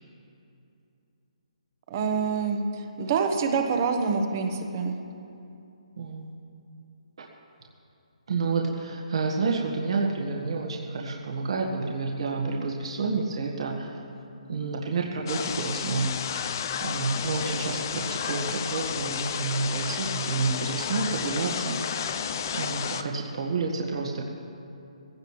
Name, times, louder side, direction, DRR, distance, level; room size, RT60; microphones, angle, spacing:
voice 1, 1.9-4.9, right 5 dB, 25° right, 5 dB, 1.1 m, -26 dB
voice 2, 6.0-6.3 7.2-7.3 8.3-14.0 14.5-22.1 22.5-24.2, right 4 dB, 55° right, -1 dB, 1.6 m, -29 dB
sound 1, 15.3-23.0, left 8 dB, 30° left, 0.5 m, -32 dB
20.0 x 16.5 x 3.2 m, 2.7 s
hypercardioid pair, 170°, 4 cm